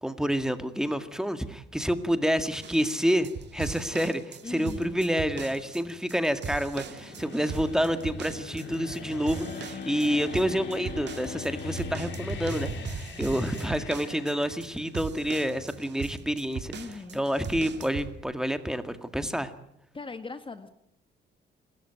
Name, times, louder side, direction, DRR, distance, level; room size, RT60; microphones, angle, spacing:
voice 1, 0.0-16.7 17.1-19.5, equal, 5° right, 9 dB, 1.9 m, -28 dB
sound 1, 2.6-18.1, right 6 dB, 60° right, 2.5 m, -40 dB
voice 2, 4.4-5.0 16.7-17.2 19.9-20.7, left 3 dB, 25° left, 10 dB, 1.5 m, -39 dB
sound 2, 4.7-15.8, left 4 dB, 70° left, 4.1 m, -42 dB
Bowed string instrument, 9.3-13.6, left 6 dB, 45° left, 1.1 m, -42 dB
27.5 x 13.5 x 9.3 m, 0.75 s
cardioid pair, 90°, 20 cm